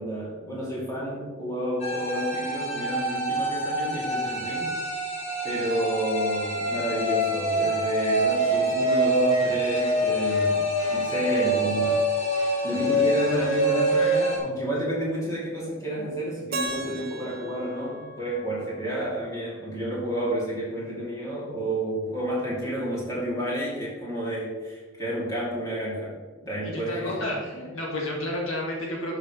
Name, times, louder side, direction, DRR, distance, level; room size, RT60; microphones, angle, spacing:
voice 1, 0.0-4.8 5.4-12.1 12.6-27.3, right 1 dB, 15° left, -6 dB, 2.9 m, -30 dB
sound 1, 1.8-14.4, right 1 dB, 35° left, 2.4 m, -25 dB
Keyboard (musical), 16.5-19.5, right 2 dB, 45° right, 0.9 m, -37 dB
voice 2, 26.6-29.2, left 1 dB, 75° left, -3 dB, 2.4 m, -31 dB
11.5 x 6.7 x 3.3 m, 1.5 s
head